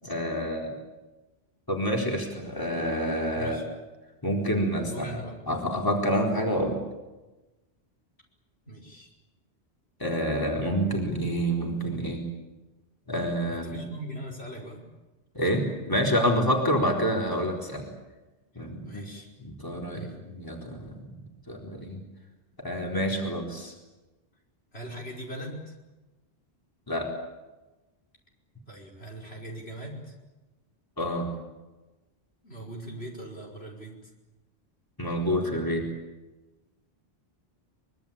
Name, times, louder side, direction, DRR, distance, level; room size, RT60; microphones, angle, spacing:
voice 1, 0.0-0.7 1.7-3.6 4.2-5.1 5.5-6.8 10.0-12.2 13.1-13.8 15.3-17.8 18.6-19.0 19.4-21.0 21.5-22.0 22.6-23.7 26.9-27.1 31.0-31.3 35.0-35.8, equal, 20° left, 0 dB, 4.2 m, -28 dB
voice 2, 3.4-3.7 4.8-5.4 8.7-9.1 13.5-14.8 18.5-19.3 19.9-20.2 24.7-25.8 28.7-30.1 32.4-34.1, right 1 dB, 70° left, 0 dB, 5.6 m, -40 dB
24.5 x 23.0 x 8.8 m, 1.1 s
omnidirectional pair, 1.1 m